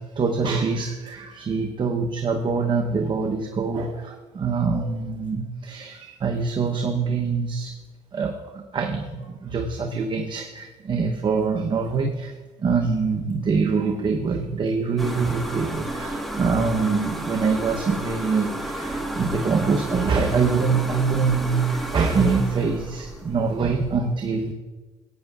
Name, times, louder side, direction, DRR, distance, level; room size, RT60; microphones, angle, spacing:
voice 1, 0.0-7.7 8.1-24.5, right 4 dB, 40° right, 2 dB, 0.9 m, -24 dB
sound 1, 15.0-24.0, right 1 dB, ahead, 1.4 m, -32 dB
17.5 x 8.9 x 2.4 m, 1.3 s
cardioid pair, 105°, 13 cm